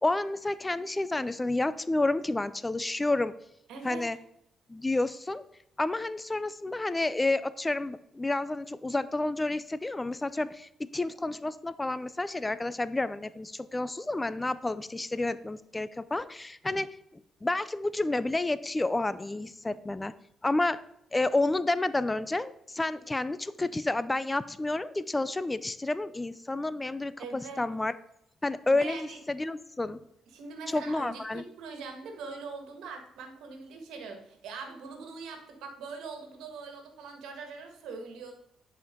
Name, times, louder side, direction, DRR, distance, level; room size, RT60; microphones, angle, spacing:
voice 1, 0.0-3.3 3.8-4.2 4.7-5.4 5.8-16.9 17.4-20.1 20.4-20.8 21.1-27.9 28.4-30.0 30.7-31.4, left 2 dB, 15° left, 15 dB, 0.4 m, -30 dB
voice 2, 3.7-4.1 27.2-27.6 28.7-29.2 30.3-38.3, right 4 dB, 85° right, 4 dB, 1.5 m, -42 dB
10.0 x 4.5 x 3.7 m, 0.77 s
cardioid pair, 90°, 0 cm